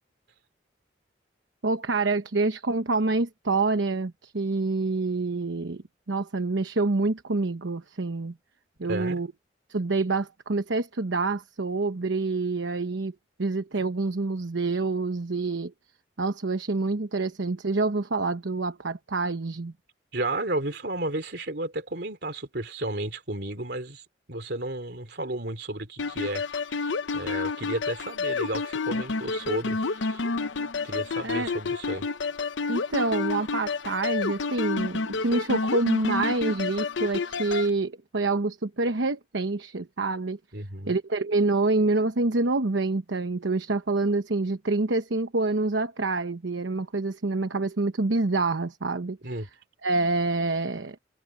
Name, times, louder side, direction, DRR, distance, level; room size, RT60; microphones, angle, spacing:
voice 1, 1.6-8.3 8.8-9.3 9.7-15.7 16.2-19.7 31.2-31.5 32.7-40.4 40.9-49.2 49.8-51.0, right 3 dB, 85° right, 1.0 m, -27 dB
voice 2, 8.8-9.2 20.1-30.3 30.8-32.1 40.5-41.0 49.2-49.5, right 2 dB, 60° right, 3.3 m, -33 dB
sound 1, 26.0-37.7, left 4 dB, 80° left, 0.7 m, -30 dB
head